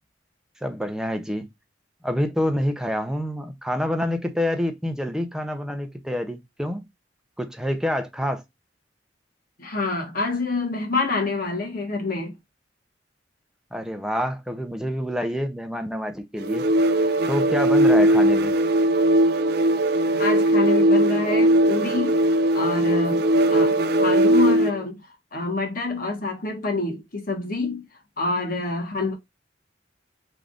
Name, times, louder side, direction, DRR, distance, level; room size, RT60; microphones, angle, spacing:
voice 1, 0.6-1.5 2.0-6.9 7.4-8.4 13.7-16.6 17.3-18.5, equal, 5° right, 0.6 m, -27 dB
voice 2, 9.6-12.3 20.2-22.2 22.5-25.0 25.3-27.8 28.2-29.1, left 3 dB, 55° left, 1.3 m, -27 dB
sound 1, 16.4-24.8, right 1 dB, 60° right, 0.4 m, -19 dB
3.4 x 2.5 x 3.7 m
head